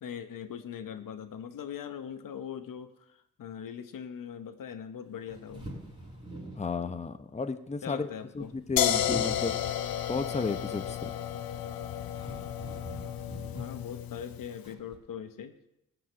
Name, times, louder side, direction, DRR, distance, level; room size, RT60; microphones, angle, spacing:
voice 1, 0.0-5.7 7.8-8.5 13.5-15.5, left 8 dB, 70° left, 9 dB, 1.0 m, -41 dB
sound 1, 5.3-6.7 8.2-8.8 9.1-9.6 11.6-11.7 12.1-13.8 14.6-15.0, right 1 dB, 15° right, 6.1 m, -43 dB
voice 2, 6.6-8.1 8.3-9.5 10.1-11.1, left 4 dB, 20° left, 9 dB, 0.8 m, -33 dB
sound 2, 8.8-14.6, left 11 dB, 90° left, 0.7 m, -32 dB
14.5 x 5.0 x 9.3 m, 0.84 s
cardioid pair, 65°, 34 cm